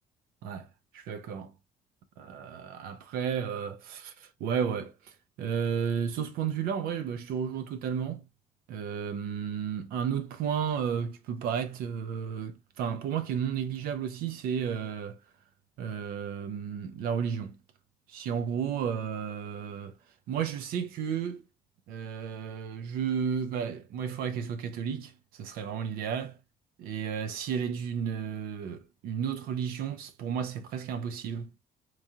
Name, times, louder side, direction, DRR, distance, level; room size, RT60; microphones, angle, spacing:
voice 1, 0.9-1.5 2.2-4.9 5.4-8.2 8.7-15.2 15.8-17.6 18.1-19.9 20.3-21.4 21.9-26.4 26.8-31.5, right 7 dB, 85° right, 0.6 m, -33 dB
3.6 x 3.1 x 2.7 m
cardioid pair, 130°, 15 cm